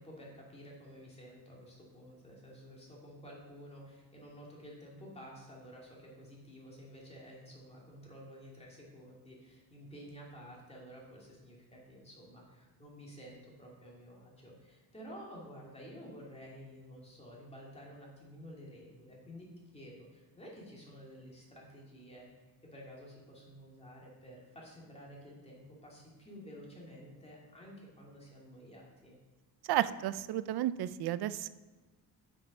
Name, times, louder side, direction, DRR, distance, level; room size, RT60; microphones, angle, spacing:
voice 1, 0.0-22.4 22.7-29.2, equal, 15° left, -4 dB, 2.4 m, -51 dB
voice 2, 29.7-31.5, right 13 dB, 75° right, 15 dB, 0.5 m, -32 dB
7.2 x 5.6 x 5.4 m, 1.3 s
cardioid pair, 125°, 39 cm